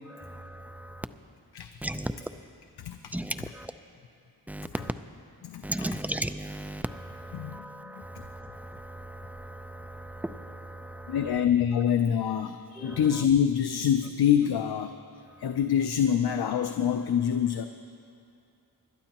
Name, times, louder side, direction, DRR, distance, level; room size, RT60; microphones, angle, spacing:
voice 1, 0.1-1.1 1.8-2.1 3.1-3.7 4.5-4.9 5.6-11.4 12.8-13.3, right 1 dB, 5° right, 9 dB, 0.4 m, -37 dB
voice 2, 2.8-3.1 5.4-5.9 7.3-7.6 7.8-8.0 11.1-14.9 15.4-17.7, left 8 dB, 85° left, 7 dB, 0.5 m, -26 dB
26.0 x 12.0 x 3.0 m, 2.5 s
wide cardioid pair, 90°, 37 cm